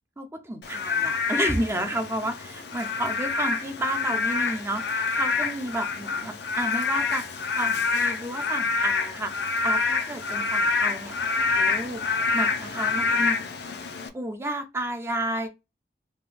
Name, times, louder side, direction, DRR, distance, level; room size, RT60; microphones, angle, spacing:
voice 1, 0.2-11.1 11.5-12.0 12.3-13.7 14.1-15.5, right 1 dB, 15° right, 0.5 m, -31 dB
Frog / Rain, 0.6-14.1, left 4 dB, 65° left, 0.5 m, -27 dB
3.7 x 2.2 x 3.2 m
head